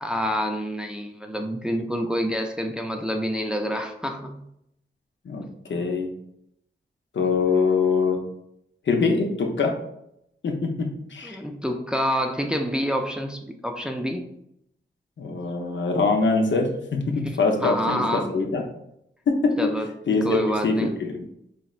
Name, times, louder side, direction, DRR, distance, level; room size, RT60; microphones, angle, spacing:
voice 1, 0.0-4.4 11.2-14.3 17.6-18.3 19.6-19.9 20.2-20.9, equal, 5° right, 3 dB, 0.4 m, -27 dB
voice 2, 5.7-6.1 7.1-8.2 8.9-9.7 10.4-11.4 15.2-18.6 19.3-19.7 20.1-21.3, left 4 dB, 70° left, 3 dB, 0.6 m, -23 dB
4.2 x 3.1 x 2.4 m, 0.78 s
wide cardioid pair, 80°, 20 cm